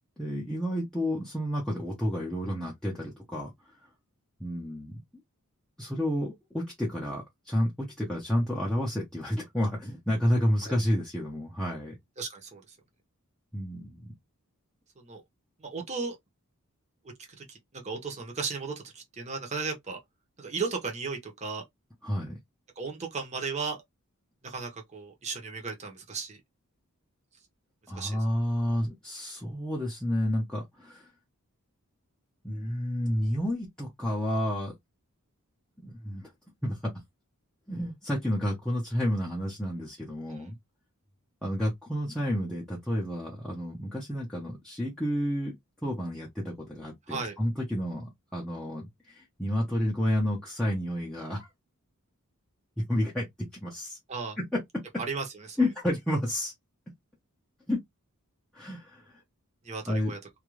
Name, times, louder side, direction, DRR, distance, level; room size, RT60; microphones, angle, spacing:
voice 1, 0.2-3.5 4.4-4.9 5.8-12.0 13.5-14.1 22.0-22.4 27.9-31.1 32.4-34.7 35.8-36.3 36.6-36.9 37.7-40.6 41.4-45.6 45.8-51.5 52.8-54.0 54.4-54.6 55.6-56.5 57.7-57.8 58.5-59.2 59.9-60.1, equal, 5° left, 0.6 m, -30 dB
voice 2, 12.2-12.6 15.0-15.2 15.6-16.2 17.4-20.0 20.4-21.6 22.8-23.8 24.4-26.4 28.0-28.2 40.3-40.5 47.1-47.4 54.1-54.4 55.1-55.6 59.6-60.2, right 4 dB, 30° right, 0.8 m, -35 dB
2.3 x 2.2 x 3.0 m
head